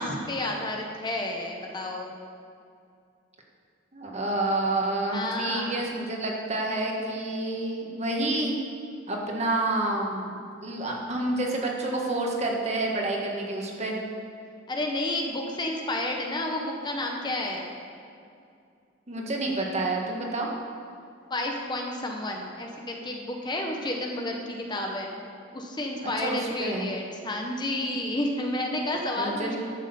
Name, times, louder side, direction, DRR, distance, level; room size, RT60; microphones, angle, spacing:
voice 1, 0.0-2.1 5.1-5.8 14.7-17.7 21.3-25.1 25.5-29.6, left 1 dB, 25° left, 1 dB, 0.9 m, -31 dB
voice 2, 3.9-8.6 9.1-14.0 19.1-20.5 26.0-26.9 29.2-29.6, right 2 dB, 35° right, -1 dB, 1.5 m, -29 dB
11.0 x 6.2 x 6.9 m, 2.4 s
head